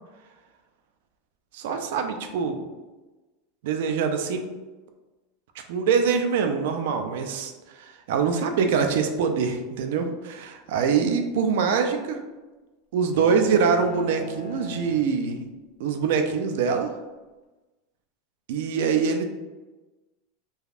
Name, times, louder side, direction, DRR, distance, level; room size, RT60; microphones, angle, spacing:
voice 1, 1.5-2.6 3.6-4.5 5.7-12.2 12.9-15.4 15.8-16.9 18.5-19.2, right 6 dB, 75° right, 5 dB, 0.4 m, -24 dB
sound 1, 13.1-15.7, left 3 dB, 50° left, 0.5 m, -38 dB
3.3 x 2.3 x 2.4 m, 1.2 s
supercardioid pair, 125°, 0 cm